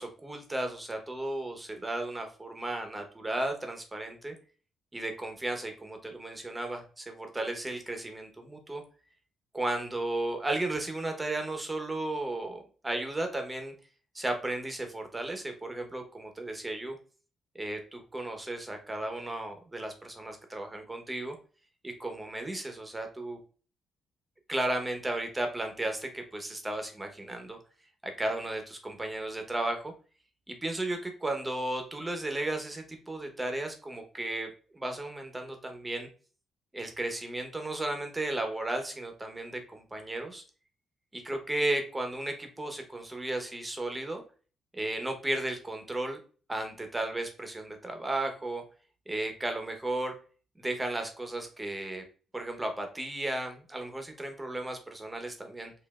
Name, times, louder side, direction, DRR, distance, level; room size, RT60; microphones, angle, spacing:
voice 1, 0.0-4.3 4.9-8.8 9.5-13.7 14.1-17.0 17.5-21.4 21.8-23.4 24.5-27.6 28.0-29.9 30.5-34.5 34.7-36.1 36.7-40.4 41.1-44.2 44.7-46.2 46.5-48.6 49.1-50.1 50.6-52.0 52.3-55.7, right 2 dB, 15° right, 5 dB, 0.9 m, -34 dB
4.4 x 2.6 x 2.3 m, 0.38 s
cardioid pair, 90°, 0 cm